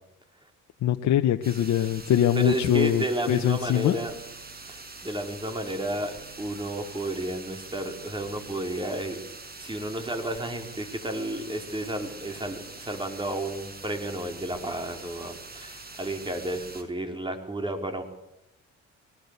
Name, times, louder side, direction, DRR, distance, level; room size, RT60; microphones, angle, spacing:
voice 1, 0.8-4.0, left 11 dB, 65° left, 7 dB, 1.1 m, -23 dB
sound 1, 1.4-16.8, right 3 dB, 30° right, 6.0 m, -44 dB
voice 2, 2.3-4.1 4.7-9.2 9.6-18.0, right 1 dB, 15° right, 4 dB, 4.6 m, -32 dB
23.0 x 19.5 x 8.3 m, 0.86 s
cardioid pair, 90°, 30 cm